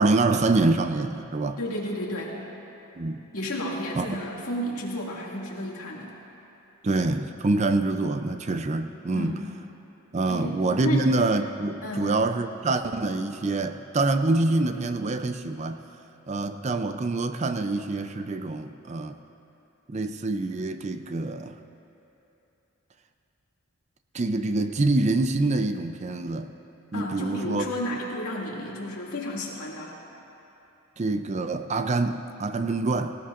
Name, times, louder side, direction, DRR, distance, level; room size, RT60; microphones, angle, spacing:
voice 1, 0.0-1.6 3.0-3.3 4.0-4.1 6.8-9.4 10.1-15.8 16.3-19.2 19.9-21.6 24.1-26.5 26.9-27.7 31.0-33.2, right 2 dB, 30° right, 8 dB, 0.4 m, -26 dB
voice 2, 1.6-2.4 3.3-6.1 9.1-9.4 10.3-11.0 11.8-12.1 26.9-29.9, left 1 dB, 85° left, -3 dB, 2.2 m, -32 dB
18.5 x 17.5 x 2.5 m, 3.0 s
head